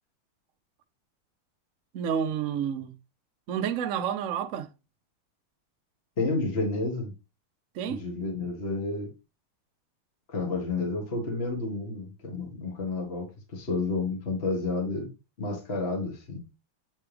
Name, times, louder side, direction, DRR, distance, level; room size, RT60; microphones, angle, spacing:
voice 1, 1.9-2.9 3.5-4.7 7.7-8.0, right 8 dB, 90° right, 0.7 m, -29 dB
voice 2, 6.2-7.1 7.8-9.1 10.3-15.1 15.4-16.4, left 3 dB, 30° left, 1.7 m, -30 dB
8.9 x 3.4 x 3.4 m
omnidirectional pair, 2.4 m